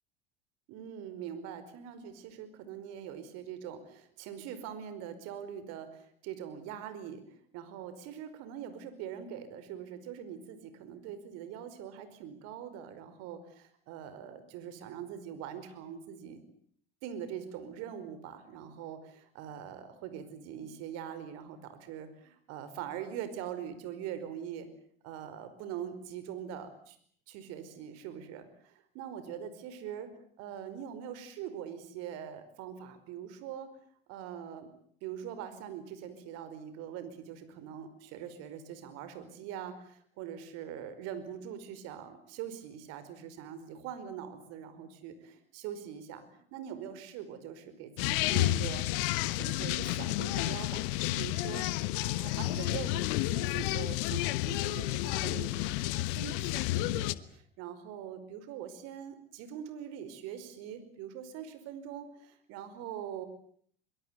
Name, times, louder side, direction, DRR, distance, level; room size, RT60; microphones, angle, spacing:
voice 1, 0.7-16.4 17.0-24.7 25.0-27.0 27.3-30.1 30.4-33.7 34.1-34.7 35.0-48.9 49.2-51.7 52.0-63.3, right 9 dB, 55° right, 11 dB, 5.0 m, -43 dB
sound 1, 48.0-57.1, left 17 dB, 60° left, 1.3 m, -31 dB
23.5 x 23.0 x 9.5 m, 0.62 s
hypercardioid pair, 80°, 30 cm